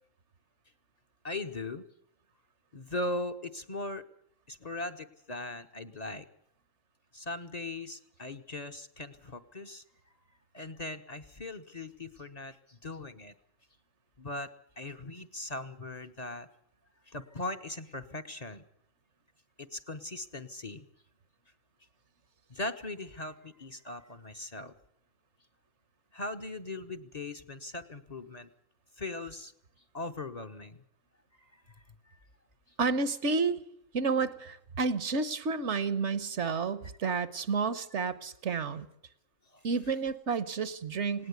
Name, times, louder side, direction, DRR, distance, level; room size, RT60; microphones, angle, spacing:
voice 1, 1.2-1.8 2.7-4.0 4.5-6.3 7.1-9.8 10.5-13.3 14.2-14.5 14.8-16.5 17.1-18.6 19.6-20.9 22.5-24.7 26.1-28.5 29.0-29.5 29.9-30.8 31.4-32.2 37.0-37.2 39.5-39.7, left 2 dB, 35° left, 6 dB, 1.0 m, -39 dB
voice 2, 32.8-33.6 33.9-38.9 39.6-41.3, right 4 dB, 65° right, 14 dB, 1.3 m, -30 dB
19.0 x 18.0 x 8.2 m, 0.74 s
omnidirectional pair, 1.3 m